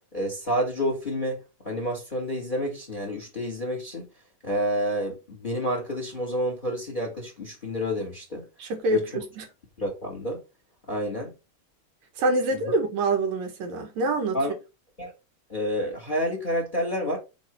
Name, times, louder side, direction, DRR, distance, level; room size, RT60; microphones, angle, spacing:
voice 1, 0.1-4.1 4.4-8.5 8.9-9.0 9.8-10.4 10.9-11.3 12.6-12.7 14.3-14.5 15.0-15.1 15.5-17.2, equal, 25° left, 1.1 m, -29 dB
voice 2, 8.6-9.4 12.2-14.4, right 2 dB, 65° right, 1.8 m, -26 dB
7.1 x 3.1 x 5.7 m
omnidirectional pair, 5.2 m